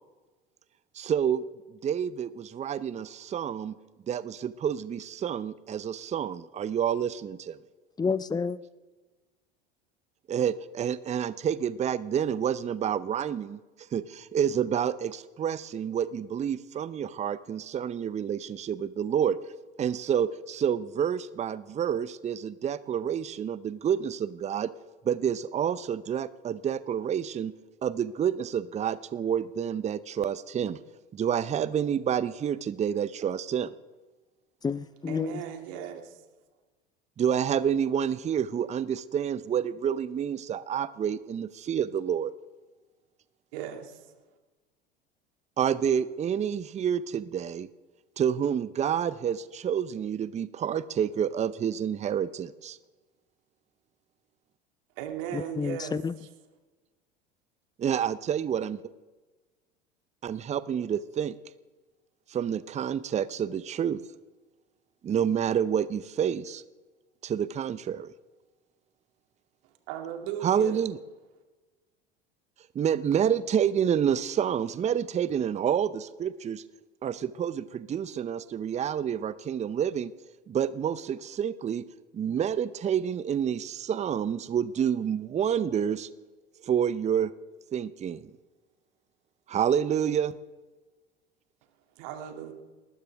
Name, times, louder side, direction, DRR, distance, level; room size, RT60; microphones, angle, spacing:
voice 1, 0.9-1.4 1.8-3.8 4.1-7.6 10.3-13.6 13.9-19.4 19.8-24.7 25.0-27.5 27.8-30.8 31.1-33.7 37.2-42.3 45.6-47.7 48.2-52.8 57.8-58.8 60.2-61.4 62.3-64.0 65.0-66.6 67.2-68.1 70.4-71.0 72.7-76.6 77.0-80.1 80.5-81.8 82.1-86.1 86.6-87.3 87.7-88.3 89.5-90.3, right 8 dB, 25° right, 0.7 m, -28 dB
voice 2, 8.0-8.6 34.6-35.4 55.3-56.1, left 5 dB, 15° left, 0.7 m, -29 dB
voice 3, 35.1-36.0 43.5-43.9 55.0-56.3 69.9-70.8 92.0-92.5, right 10 dB, 60° right, 2.6 m, -37 dB
20.0 x 19.5 x 3.5 m
figure-of-eight pair, 75°, 29 cm